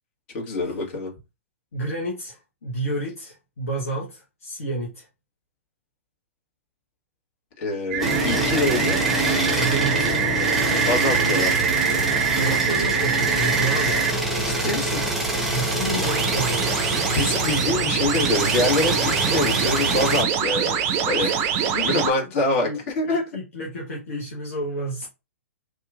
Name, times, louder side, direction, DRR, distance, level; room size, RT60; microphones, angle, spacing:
voice 1, 0.3-1.1 7.6-9.0 10.8-11.7 14.3-15.1 16.6-16.7 17.1-20.8 21.1-21.4 21.7-22.7 22.9-23.2, left 2 dB, 45° left, 1.3 m, -25 dB
voice 2, 1.7-5.1 9.5-10.1 12.3-14.0 15.5-16.8 21.2-21.4 22.6-25.1, right 1 dB, 65° left, 0.9 m, -30 dB
sound 1, 7.9-14.1 15.7-22.1, right 7 dB, 30° right, 0.5 m, -24 dB
sound 2, 8.0-20.2, right 1 dB, ahead, 0.9 m, -25 dB
2.8 x 2.3 x 2.4 m
figure-of-eight pair, 115°, 8 cm